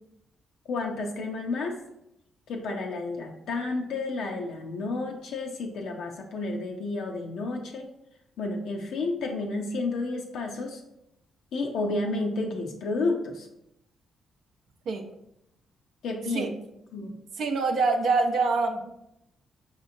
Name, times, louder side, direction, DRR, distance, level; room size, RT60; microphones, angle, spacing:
voice 1, 0.7-1.8 2.5-7.9 8.4-10.8 11.5-13.5 16.0-16.5 16.9-17.1, left 3 dB, 70° left, 1 dB, 0.5 m, -31 dB
voice 2, 17.4-18.9, right 3 dB, 70° right, 3 dB, 0.5 m, -25 dB
5.4 x 2.9 x 2.6 m, 0.82 s
hypercardioid pair, 50°, 0 cm